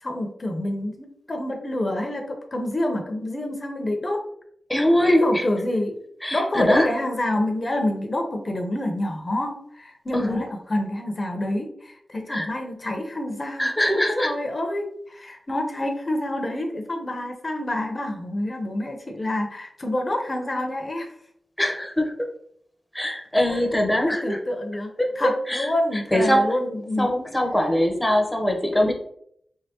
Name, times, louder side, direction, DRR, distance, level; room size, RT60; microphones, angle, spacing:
voice 1, 0.0-4.2 5.2-6.0 6.3-21.1 23.5-23.6 24.1-27.1, left 1 dB, 40° left, 3 dB, 0.7 m, -27 dB
voice 2, 4.7-5.5 6.2-6.9 10.1-10.5 12.3-12.5 13.6-14.3 21.6-22.3 22.9-24.4 25.0-26.5 27.0-28.9, equal, 10° left, 3 dB, 0.8 m, -22 dB
3.4 x 3.3 x 2.8 m, 0.68 s
cardioid pair, 60°, 0 cm